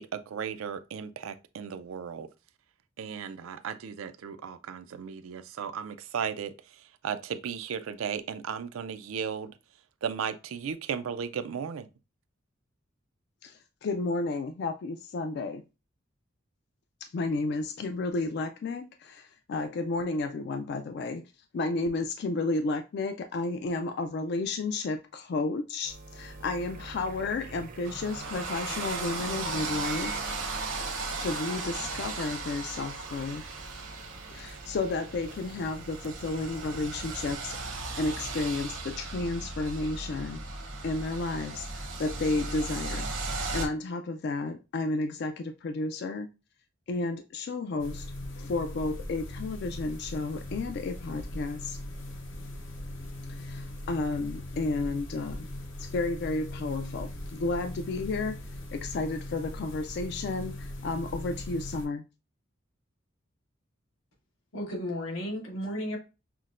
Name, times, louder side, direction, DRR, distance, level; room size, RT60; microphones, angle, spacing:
voice 1, 0.0-2.3 3.0-9.5 10.0-11.9, right 7 dB, 90° right, 0.4 m, -35 dB
voice 2, 13.4-15.6 17.1-21.2 21.5-30.1 31.2-33.4 34.3-37.6 38.0-40.4 40.8-43.1 43.5-46.3 46.9-48.1 48.3-51.8 53.4-55.5 55.8-58.4 58.7-62.0, left 3 dB, 55° left, 0.3 m, -32 dB
sound 1, 25.8-37.4, right 2 dB, 40° right, 0.5 m, -46 dB
sound 2, 27.8-43.7, right 3 dB, 70° right, 0.8 m, -36 dB
sound 3, 47.8-61.9, left 1 dB, 70° left, 0.8 m, -40 dB
voice 3, 64.5-66.0, equal, 90° left, 1.5 m, -33 dB
5.8 x 2.1 x 2.4 m
head